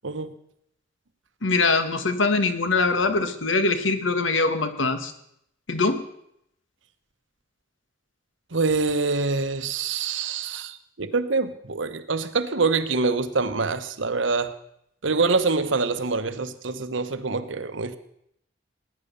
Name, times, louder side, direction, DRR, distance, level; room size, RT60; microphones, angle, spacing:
voice 1, 1.4-5.1 5.7-6.0, left 3 dB, 85° left, 9 dB, 1.6 m, -23 dB
voice 2, 8.5-14.5 15.0-18.0, right 4 dB, 75° right, 10 dB, 1.1 m, -25 dB
19.5 x 9.9 x 6.9 m, 0.76 s
head